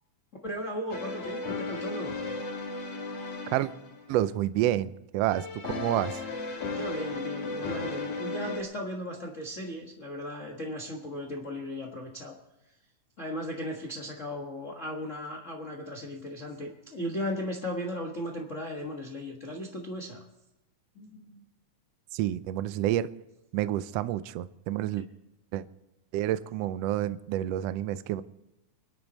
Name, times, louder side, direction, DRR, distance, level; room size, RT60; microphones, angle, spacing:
voice 1, 0.4-2.1 6.7-12.4 13.2-20.2 20.9-21.4, equal, 35° left, 0 dB, 1.2 m, -36 dB
sound 1, 0.9-4.1 5.3-8.6, left 3 dB, 60° left, 3.1 m, -35 dB
voice 2, 4.1-6.2 22.1-23.1 23.5-25.1 25.5-25.6 26.1-28.2, right 13 dB, 85° right, 14 dB, 1.4 m, -29 dB
24.5 x 10.5 x 4.1 m, 0.95 s
omnidirectional pair, 3.6 m